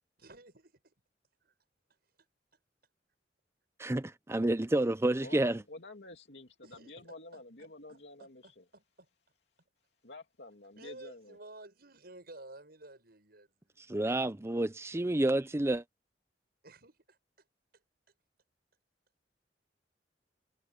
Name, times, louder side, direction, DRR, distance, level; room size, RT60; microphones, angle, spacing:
voice 1, 0.2-0.9 6.6-9.1 10.8-13.8 16.6-17.2, right 2 dB, 60° right, 7.7 m, -53 dB
voice 2, 3.8-5.6 13.9-15.8, right 1 dB, 15° right, 0.6 m, -29 dB
voice 3, 5.2-8.6 10.0-11.4, left 2 dB, 70° left, 2.9 m, -49 dB
head